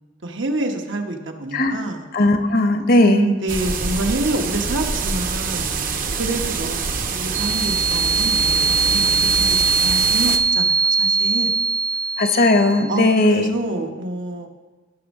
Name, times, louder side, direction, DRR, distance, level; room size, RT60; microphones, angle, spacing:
voice 1, 0.2-2.1 3.0-5.7 6.2-11.5 12.9-14.5, right 2 dB, 80° right, 3 dB, 1.2 m, -27 dB
voice 2, 2.1-3.3 12.2-13.5, left 2 dB, 50° left, 7 dB, 0.8 m, -17 dB
sound 1, 3.5-10.4, right 5 dB, 50° right, 0.8 m, -25 dB
sound 2, 7.3-13.0, right 5 dB, 15° right, 0.5 m, -20 dB
17.5 x 6.2 x 3.7 m, 1.3 s
head